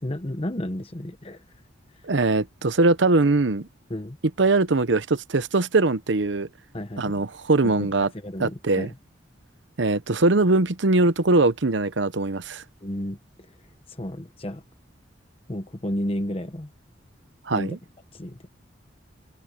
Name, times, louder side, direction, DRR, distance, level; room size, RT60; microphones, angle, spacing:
voice 1, 0.0-1.4 3.9-4.2 6.7-7.2 7.6-7.9 8.2-8.9 12.8-13.2 13.9-14.6 15.5-16.7 17.5-17.8 18.1-18.4, left 1 dB, 30° left, 1.1 m, -32 dB
voice 2, 2.0-3.7 4.4-6.5 7.0-8.1 8.4-8.9 9.8-12.6 17.5-17.8, right 2 dB, 70° right, 0.9 m, -21 dB
open air
head